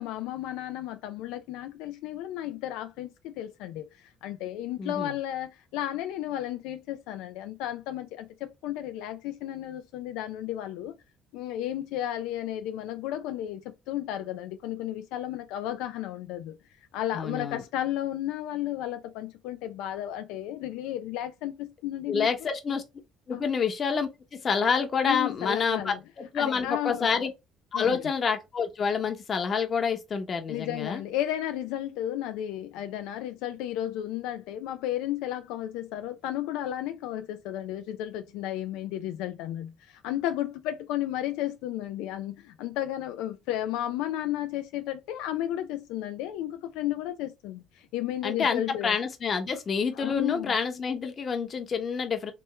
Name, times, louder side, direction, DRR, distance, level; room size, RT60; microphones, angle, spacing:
voice 1, 0.0-3.9 4.2-10.9 11.3-16.6 16.9-22.3 23.3-23.5 25.0-26.0 26.3-27.2 27.7-28.1 30.5-49.0 50.0-50.5, left 12 dB, 90° left, 0.4 m, -33 dB
voice 2, 4.8-5.1 17.1-17.6 22.1-22.8 23.3-27.3 27.7-31.0 48.2-52.3, left 6 dB, 40° left, 1.0 m, -28 dB
3.4 x 3.0 x 3.0 m
cardioid pair, 105°, 0 cm